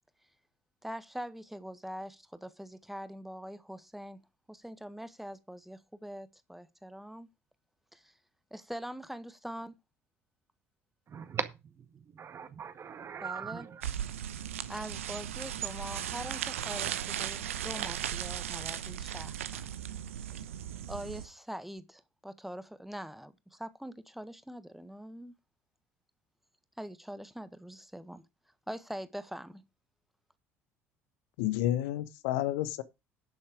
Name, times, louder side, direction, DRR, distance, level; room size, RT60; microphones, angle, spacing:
voice 1, 0.8-4.2 4.5-7.3 7.9-8.1 8.5-9.8 13.2-13.7 14.7-19.7 20.9-25.3 26.8-28.2 28.7-29.6, equal, 5° right, 1.4 m, -43 dB
voice 2, 11.1-13.8, right 7 dB, 35° right, 1.8 m, -40 dB
sound 1, 13.8-21.3, right 10 dB, 75° right, 1.0 m, -37 dB
voice 3, 31.4-32.8, left 13 dB, 65° left, 1.3 m, -30 dB
11.5 x 7.3 x 5.0 m
figure-of-eight pair, 60°, 7 cm